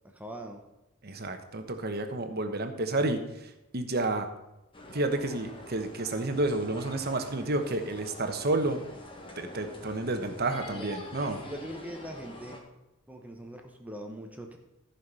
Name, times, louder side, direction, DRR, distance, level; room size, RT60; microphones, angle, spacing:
voice 1, 0.1-0.6 10.7-10.9 11.4-12.7 13.1-14.6, right 1 dB, 5° right, 3 dB, 0.9 m, -41 dB
voice 2, 1.0-4.3 4.9-8.8 9.4-11.4, right 2 dB, 50° right, 7 dB, 1.1 m, -30 dB
sound 1, 4.7-12.6, left 1 dB, 25° left, 1.6 m, -46 dB
13.5 x 5.8 x 5.6 m, 0.97 s
head